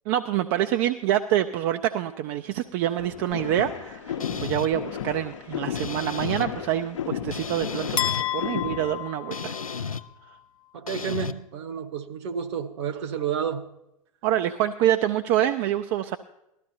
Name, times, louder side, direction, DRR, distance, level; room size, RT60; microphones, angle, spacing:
voice 1, 0.1-9.5 9.8-10.0 10.3-10.4 14.2-16.2, right 12 dB, 40° right, 8 dB, 0.5 m, -26 dB
sound 1, 3.0-9.0, left 8 dB, 60° left, 0.9 m, -34 dB
sound 2, 4.2-4.7 5.7-6.5 7.3-8.2 9.3-10.0 10.9-11.3, left 5 dB, 85° left, 0.5 m, -33 dB
sound 3, 8.0-10.1, left 12 dB, 30° left, 0.8 m, -30 dB
voice 2, 10.7-13.6, right 7 dB, 55° right, 10 dB, 1.2 m, -30 dB
18.5 x 13.5 x 2.8 m, 0.85 s
figure-of-eight pair, 95°, 17 cm